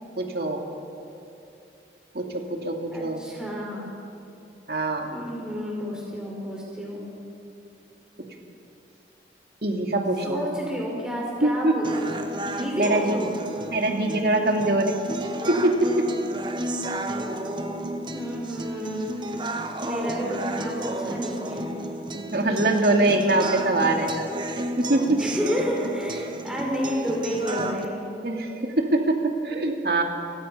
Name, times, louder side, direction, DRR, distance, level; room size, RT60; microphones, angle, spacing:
voice 1, 0.2-0.6 2.1-3.2 4.7-5.1 9.6-10.4 11.4-11.7 12.8-13.2 13.7-15.0 15.5-16.1 22.1-24.3 24.8-25.2 28.2-29.2 29.4-30.0, right 2 dB, 60° right, 2 dB, 2.4 m, -23 dB
voice 2, 2.9-3.9 5.1-7.1 10.2-12.3 12.6-13.3 18.1-19.1 19.8-21.8 25.2-28.0, equal, 5° right, -3 dB, 5.1 m, -30 dB
sound 1, 11.8-27.9, right 1 dB, 25° right, 1.2 m, -32 dB
30.0 x 17.5 x 5.7 m, 2.7 s
head